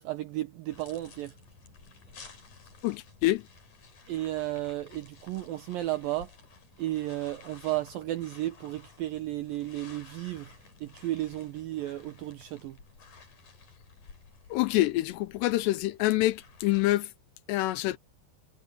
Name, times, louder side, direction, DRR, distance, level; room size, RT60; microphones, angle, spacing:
voice 1, 0.0-1.3 4.1-6.3 6.8-10.5 10.8-12.8, right 15 dB, 80° right, 2.1 m, -33 dB
sound 1, 0.7-17.0, left 5 dB, 45° left, 5.4 m, -54 dB
voice 2, 2.8-3.5 14.5-17.1 17.5-18.0, left 17 dB, 80° left, 2.7 m, -26 dB
omnidirectional pair, 5.1 m